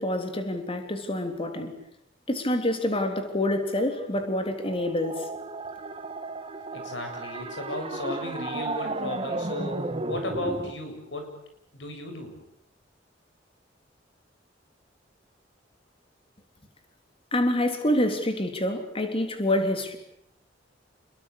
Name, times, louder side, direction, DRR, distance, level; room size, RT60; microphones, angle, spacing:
voice 1, 0.0-1.7 2.3-5.3 17.3-20.0, left 1 dB, 30° left, 3.5 m, -27 dB
sound 1, 4.2-10.7, right 2 dB, 30° right, 1.8 m, -34 dB
voice 2, 6.7-11.3 11.7-12.3, left 1 dB, 70° left, 7.9 m, -35 dB
28.5 x 22.5 x 8.7 m
head